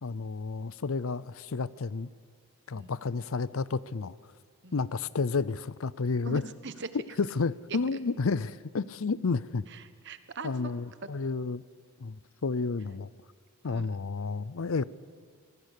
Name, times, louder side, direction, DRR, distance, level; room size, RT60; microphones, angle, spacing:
voice 1, 0.0-2.1 2.7-4.2 4.7-6.4 7.2-9.6 10.4-11.6 12.0-12.2 12.4-13.1 13.6-14.8, left 4 dB, 65° left, 19 dB, 0.6 m, -31 dB
voice 2, 6.2-6.9 9.7-10.5 13.7-13.9, right 3 dB, 50° right, 11 dB, 1.3 m, -41 dB
25.0 x 19.0 x 8.4 m, 2.1 s
head